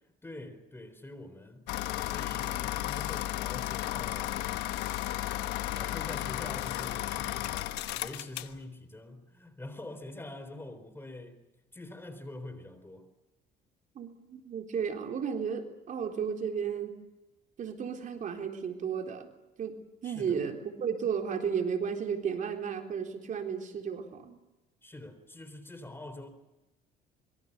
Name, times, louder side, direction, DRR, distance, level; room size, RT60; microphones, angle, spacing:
voice 1, 0.2-1.7 2.0-4.6 5.7-11.4 11.7-13.1 20.0-20.4 24.8-26.3, left 2 dB, 15° left, 4.0 m, -45 dB
sound 1, 1.7-8.6, left 14 dB, 90° left, 1.2 m, -34 dB
voice 2, 14.0-17.0 17.6-19.3 19.6-24.4, right 7 dB, 50° right, 3.9 m, -34 dB
25.5 x 23.5 x 6.8 m
cardioid pair, 110°, 17 cm